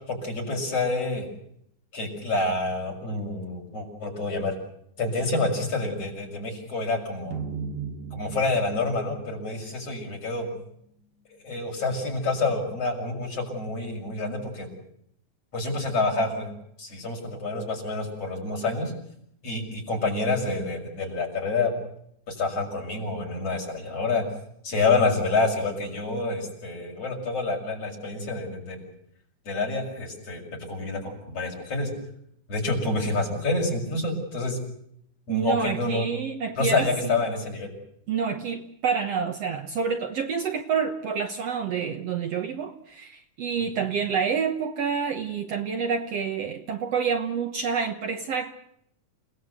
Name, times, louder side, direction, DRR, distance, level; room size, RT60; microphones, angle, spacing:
voice 1, 0.1-1.3 1.9-4.5 5.0-7.4 8.1-10.5 11.4-14.7 15.5-16.5 16.8-18.9 19.4-21.7 22.3-24.2 24.6-28.8 29.5-30.4 30.7-31.9 32.5-34.6 35.3-36.1 36.6-37.7, left 3 dB, 45° left, 1 dB, 7.2 m, -27 dB
sound 1, 7.3-10.5, right 5 dB, 80° right, 3.4 m, -37 dB
voice 2, 35.3-37.2 38.1-48.5, right 6 dB, 60° right, 6 dB, 2.0 m, -28 dB
29.0 x 18.5 x 8.1 m, 0.74 s
omnidirectional pair, 3.8 m